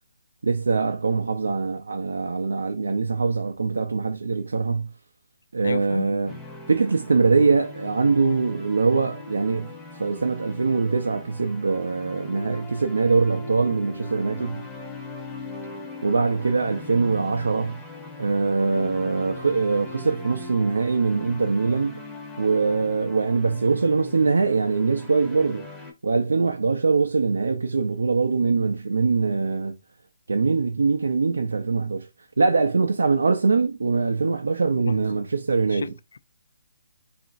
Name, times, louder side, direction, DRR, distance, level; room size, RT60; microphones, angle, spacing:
voice 1, 0.4-4.9 5.5-6.3 6.7-14.6 16.0-17.8 18.2-22.0 22.4-25.7 26.0-29.8 30.3-32.1 32.4-35.9, right 4 dB, 90° right, 0.4 m, -23 dB
voice 2, 5.6-6.1 34.9-35.3 35.7-36.2, left 5 dB, 70° left, 0.3 m, -32 dB
sound 1, 6.3-25.9, left 3 dB, 5° left, 0.6 m, -40 dB
2.9 x 2.4 x 2.5 m
hypercardioid pair, 165°, 0 cm